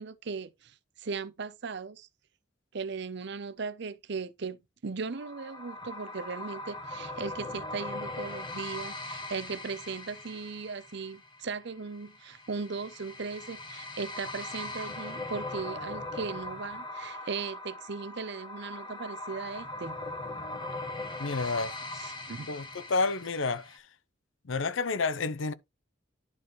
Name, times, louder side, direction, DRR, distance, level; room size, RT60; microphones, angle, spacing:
voice 1, 0.0-2.1 2.7-4.6 4.8-20.0 22.0-22.5, right 4 dB, 60° right, 0.7 m, -38 dB
sound 1, 5.1-23.8, left 2 dB, 25° left, 1.3 m, -40 dB
voice 2, 21.2-21.7 22.5-23.7 24.5-25.5, left 3 dB, 75° left, 0.7 m, -30 dB
11.0 x 4.4 x 3.1 m
head